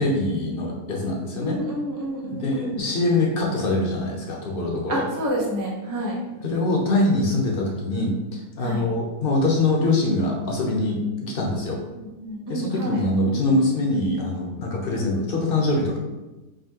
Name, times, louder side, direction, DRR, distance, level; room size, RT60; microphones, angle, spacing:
voice 1, 0.0-1.6 2.2-5.0 6.4-11.8 12.5-16.0, left 2 dB, 50° left, 0 dB, 0.8 m, -23 dB
voice 2, 1.4-2.9 4.9-6.2 8.6-8.8 12.0-13.0, right 1 dB, 25° right, -4 dB, 0.4 m, -29 dB
5.0 x 2.7 x 2.8 m, 1.1 s
omnidirectional pair, 1.6 m